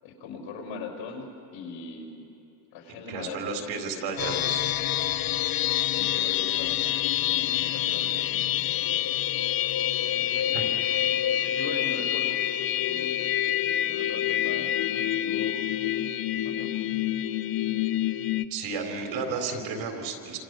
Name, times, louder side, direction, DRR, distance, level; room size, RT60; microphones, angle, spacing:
voice 1, 0.0-2.2 2.7-4.5 5.8-6.9 7.3-8.4 10.1-12.4 12.7-13.2 13.8-16.7, left 4 dB, 75° left, 3 dB, 5.8 m, -41 dB
voice 2, 3.1-4.7 10.3-11.2 18.5-20.4, right 4 dB, 80° right, 3 dB, 4.2 m, -33 dB
sound 1, 4.2-18.5, left 12 dB, 50° left, 0.8 m, -27 dB
28.5 x 26.5 x 6.3 m, 2.8 s
cardioid pair, 135°, 44 cm